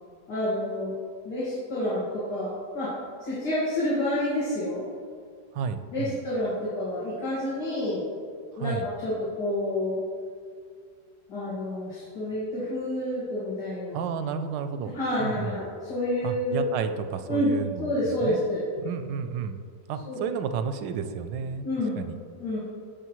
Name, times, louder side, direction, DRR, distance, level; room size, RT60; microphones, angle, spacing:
voice 1, 0.3-1.0 1.2-3.0 3.2-4.8 5.9-8.0 8.6-10.0 11.3-14.0 14.9-16.6 17.3-17.5 17.8-18.6 20.1-20.2 21.6-22.0 22.4-22.6, left 1 dB, 70° left, -9 dB, 2.5 m, -29 dB
voice 2, 5.5-6.2 8.6-8.9 13.9-14.9 15.2-15.6 16.2-18.0 18.2-18.4 18.8-19.6 19.9-21.7 22.0-22.2, right 6 dB, 85° right, 9 dB, 1.2 m, -31 dB
12.0 x 6.5 x 3.0 m, 2.1 s
omnidirectional pair, 1.9 m